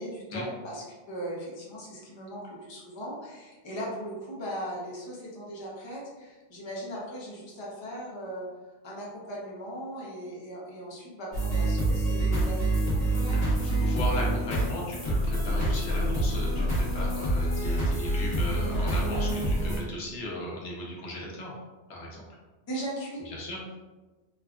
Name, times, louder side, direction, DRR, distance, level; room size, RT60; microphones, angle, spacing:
voice 1, 0.0-8.5 8.8-13.4 22.7-23.3, equal, 30° left, -5 dB, 0.6 m, -38 dB
sound 1, 11.3-19.8, right 1 dB, 60° left, 1.3 m, -26 dB
voice 2, 13.3-21.5 21.9-22.2 23.3-23.6, left 1 dB, 85° left, -3 dB, 1.1 m, -36 dB
3.3 x 2.3 x 2.4 m, 1.2 s
omnidirectional pair, 1.1 m